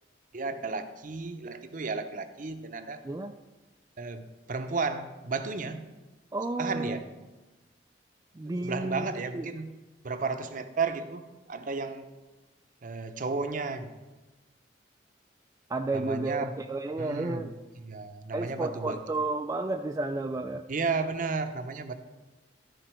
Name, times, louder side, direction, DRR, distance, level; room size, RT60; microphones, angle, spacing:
voice 1, 0.3-3.0 4.0-5.9 6.6-7.0 8.4-9.7 10.0-12.1 12.8-13.9 15.9-16.5 17.0-19.0 20.7-21.9, right 4 dB, 50° right, 8 dB, 0.7 m, -33 dB
voice 2, 6.3-7.0 8.4-9.1 9.3-9.4 15.7-17.5 18.3-20.6, right 2 dB, 20° right, 4 dB, 0.3 m, -32 dB
13.0 x 4.9 x 4.4 m, 1.1 s
head